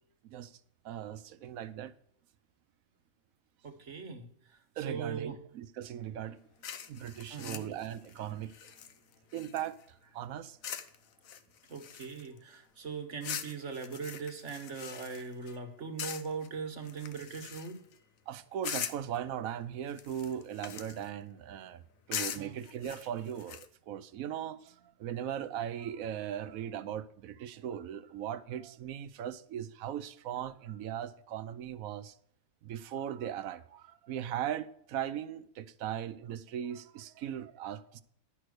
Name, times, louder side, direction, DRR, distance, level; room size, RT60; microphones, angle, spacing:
voice 1, 0.8-1.9 4.8-6.4 6.9-8.7 9.3-9.8 10.1-10.6 18.3-21.8 22.1-32.1 32.6-38.0, right 10 dB, 85° right, 1.1 m, -38 dB
voice 2, 3.6-4.3 4.8-5.4 7.3-7.7 11.7-17.8 22.3-22.6, right 5 dB, 60° right, 1.6 m, -40 dB
sound 1, 6.6-9.9 10.6-11.0 11.2-12.4 13.2-15.6 16.0-16.5 16.9-17.9 18.6-19.2 19.9-21.1 22.1-23.7, left 9 dB, 75° left, 1.2 m, -41 dB
11.0 x 6.1 x 6.3 m
omnidirectional pair, 1.4 m